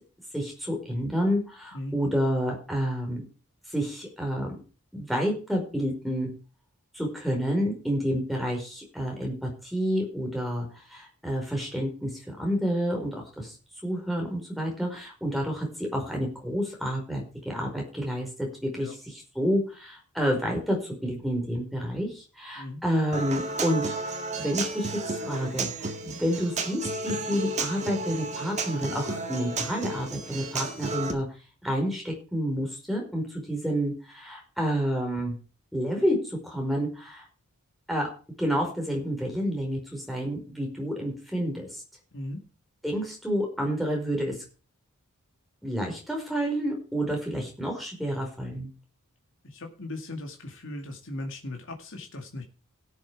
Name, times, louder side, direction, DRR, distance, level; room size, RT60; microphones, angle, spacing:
voice 1, 0.3-3.3 3.7-4.6 4.9-6.3 6.9-13.5 13.8-20.8 21.0-23.9 24.4-31.3 31.6-35.4 35.7-37.2 37.9-38.1 38.4-41.8 42.8-44.4 45.6-48.7, equal, ahead, 0 dB, 4.9 m, -29 dB
Human voice / Acoustic guitar, 23.1-31.1, right 3 dB, 30° right, 1.9 m, -32 dB
voice 2, 42.1-42.4 49.4-52.4, left 1 dB, 60° left, 3 dB, 2.2 m, -38 dB
17.5 x 7.4 x 4.7 m, 0.35 s
head